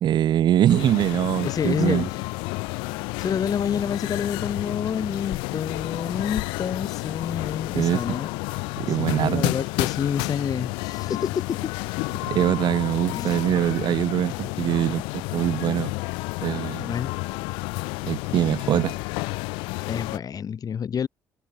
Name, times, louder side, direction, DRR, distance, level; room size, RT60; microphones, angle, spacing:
voice 1, 0.0-2.1 7.7-8.0 8.8-9.5 12.3-15.9 16.4-16.9 18.0-19.0, right 11 dB, 65° right, 0.6 m, -23 dB
sound 1, 0.7-20.2, left 27 dB, 90° left, 0.6 m, -31 dB
voice 2, 1.4-2.2 3.2-8.3 8.9-11.7 13.1-13.5 16.8-17.1 19.9-21.1, left 7 dB, 50° left, 0.7 m, -28 dB
open air
supercardioid pair, 60°, 8 cm